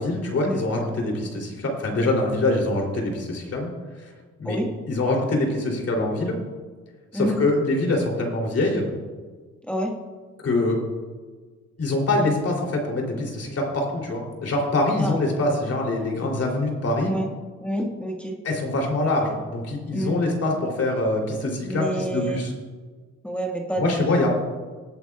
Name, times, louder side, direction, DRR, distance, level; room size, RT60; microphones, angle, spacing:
voice 1, 0.0-3.7 4.0-4.1 4.4-4.6 4.9-6.4 7.1-8.9 10.4-10.8 11.8-17.1 18.4-22.5 23.8-24.3, left 2 dB, 50° left, 0 dB, 3.2 m, -24 dB
voice 2, 17.6-18.4 19.9-20.2 21.6-22.4 23.2-23.8, right 1 dB, 5° left, -1 dB, 1.7 m, -28 dB
19.5 x 8.8 x 2.4 m, 1.4 s
cardioid pair, 90°, 30 cm